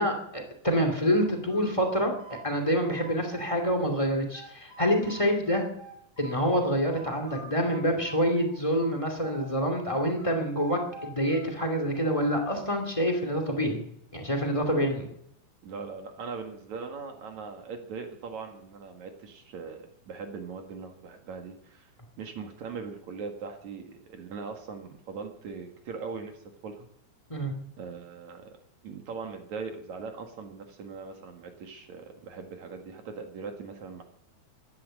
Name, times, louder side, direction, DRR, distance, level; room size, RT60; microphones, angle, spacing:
voice 1, 0.0-2.1 2.4-5.6 6.2-13.8 14.1-15.1 27.3-27.5, equal, 15° left, 4 dB, 1.3 m, -27 dB
sound 1, 1.1-3.7 4.0-6.5 6.9-9.5 9.8-12.4, right 2 dB, 5° right, 4.9 m, -47 dB
voice 2, 15.6-21.9 22.2-26.4 26.6-26.9 27.8-28.5 28.8-34.0, right 5 dB, 55° right, 4 dB, 2.6 m, -40 dB
15.5 x 11.5 x 7.7 m, 0.72 s
omnidirectional pair, 5.0 m